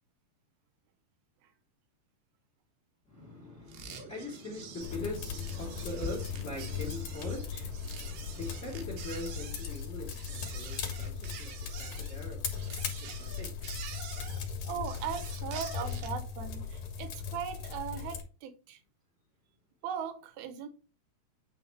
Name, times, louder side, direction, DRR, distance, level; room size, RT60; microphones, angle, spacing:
voice 1, 3.1-14.7, left 2 dB, 25° left, 1.8 m, -43 dB
sound 1, 3.7-16.2, right 5 dB, 90° right, 3.7 m, -46 dB
sound 2, 4.8-18.2, left 7 dB, 55° left, 2.2 m, -38 dB
voice 2, 14.6-18.8 19.8-20.7, right 8 dB, 70° right, 2.7 m, -39 dB
9.2 x 3.4 x 4.7 m
omnidirectional pair, 4.8 m